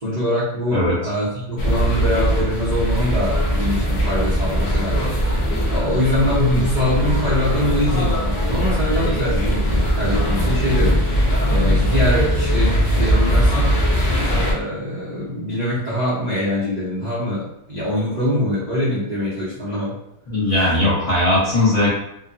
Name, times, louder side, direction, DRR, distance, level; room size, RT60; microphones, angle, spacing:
voice 1, 0.0-5.2 5.7-11.0 11.5-13.8 14.3-20.0, left 1 dB, 35° right, -12 dB, 0.7 m, -23 dB
sound 1, 1.6-14.5, equal, 85° left, 0.4 m, -20 dB
voice 2, 20.3-21.9, left 1 dB, 25° left, -10 dB, 0.8 m, -18 dB
3.0 x 2.2 x 2.5 m, 0.79 s
omnidirectional pair, 1.7 m